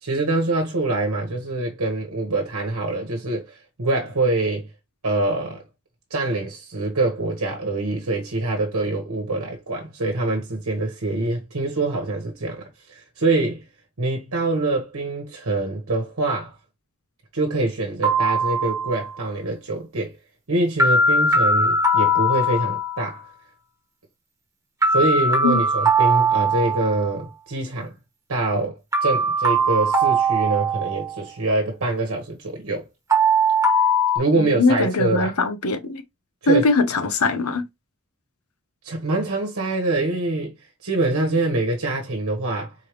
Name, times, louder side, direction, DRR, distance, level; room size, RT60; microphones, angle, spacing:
voice 1, 0.0-4.7 5.0-5.6 6.1-13.7 14.0-16.5 17.3-20.2 20.5-23.3 24.9-28.0 28.3-32.8 34.1-35.3 36.4-36.7 38.8-40.6 40.8-42.7, right 2 dB, 75° right, 1.1 m, -25 dB
sound 1, 18.0-19.2 20.8-23.1 24.8-27.1 28.9-31.3 33.1-34.2, right 1 dB, 15° right, 1.1 m, -20 dB
voice 2, 34.4-36.0 36.5-37.6, left 3 dB, 90° left, 0.9 m, -21 dB
4.5 x 3.3 x 3.0 m
head